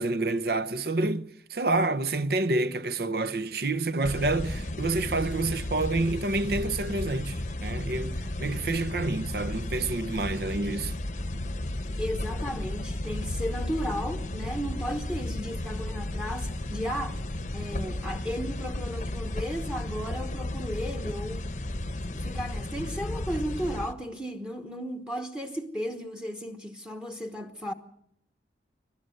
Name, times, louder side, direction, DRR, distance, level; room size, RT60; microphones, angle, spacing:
voice 1, 0.0-10.9, right 2 dB, 55° right, 0.8 m, -28 dB
sound 1, 4.0-23.9, left 1 dB, 40° left, 0.9 m, -34 dB
voice 2, 12.0-17.2 17.5-21.5 22.1-27.7, equal, 5° right, 1.1 m, -34 dB
27.5 x 13.0 x 7.9 m
head